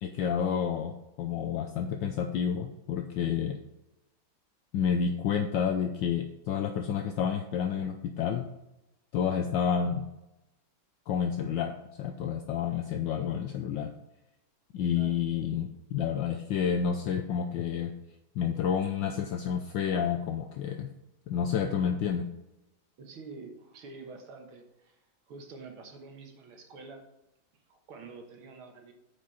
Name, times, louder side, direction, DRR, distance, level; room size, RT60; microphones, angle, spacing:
voice 1, 0.0-3.6 4.7-8.5 9.1-10.1 11.1-13.9 14.7-17.9 18.3-20.9 21.3-22.3, left 7 dB, 70° left, 5 dB, 1.2 m, -30 dB
voice 2, 23.0-27.0 27.7-28.9, right 4 dB, 80° right, 3 dB, 2.2 m, -47 dB
9.2 x 5.1 x 4.1 m, 0.91 s
omnidirectional pair, 2.3 m